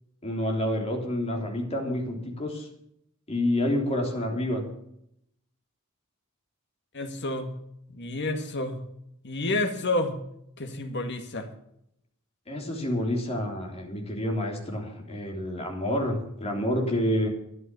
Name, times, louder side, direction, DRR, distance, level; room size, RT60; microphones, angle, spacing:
voice 1, 0.2-2.7 3.3-4.6 12.5-17.3, left 1 dB, 30° left, 1 dB, 3.4 m, -28 dB
voice 2, 6.9-7.5 7.9-8.8 9.2-10.2 10.6-11.5, left 2 dB, 55° left, 6 dB, 2.0 m, -29 dB
12.5 x 11.0 x 7.0 m, 0.74 s
head